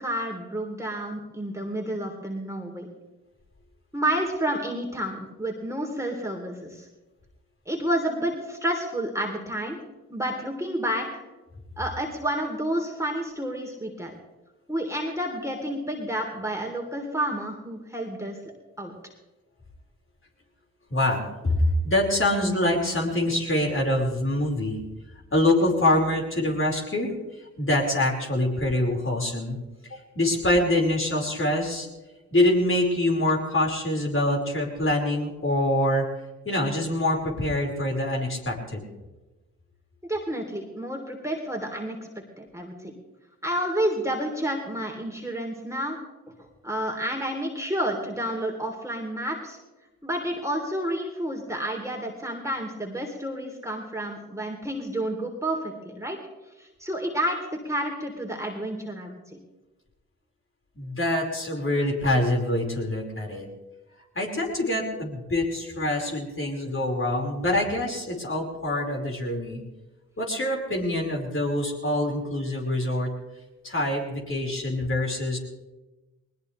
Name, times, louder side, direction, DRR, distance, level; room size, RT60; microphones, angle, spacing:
voice 1, 0.0-2.9 3.9-6.9 7.7-9.8 10.1-11.2 11.8-14.1 14.7-18.4 18.8-19.0 40.0-42.0 42.4-42.9 43.4-46.0 46.4-49.6 50.0-56.2 56.6-59.4, right 1 dB, 10° right, 1 dB, 3.5 m, -30 dB
voice 2, 20.9-24.8 25.3-27.1 27.6-29.6 29.9-31.9 32.3-36.0 36.5-38.8 60.8-63.5 64.2-69.6 70.2-73.1 73.6-75.4, left 1 dB, 35° left, -1 dB, 5.2 m, -25 dB
20.0 x 20.0 x 3.4 m, 1.1 s
hypercardioid pair, 50°, 37 cm